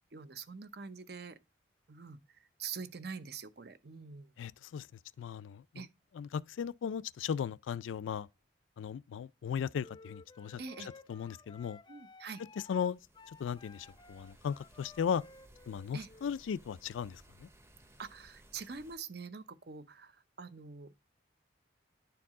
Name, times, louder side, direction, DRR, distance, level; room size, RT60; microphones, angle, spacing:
voice 1, 0.1-1.4 1.9-4.3 5.7-5.9 10.6-10.9 11.9-12.4 15.9-16.1 18.0-20.9, right 5 dB, 55° right, 0.7 m, -45 dB
voice 2, 4.4-4.9 5.2-5.8 6.1-8.3 8.8-10.6 11.1-11.8 12.7-13.0 13.4-15.2 15.7-17.5, left 7 dB, 90° left, 0.3 m, -37 dB
sound 1, 9.8-16.3, left 3 dB, 25° left, 0.4 m, -56 dB
sound 2, 12.5-19.0, right 1 dB, 15° right, 0.8 m, -61 dB
10.5 x 4.6 x 3.6 m
head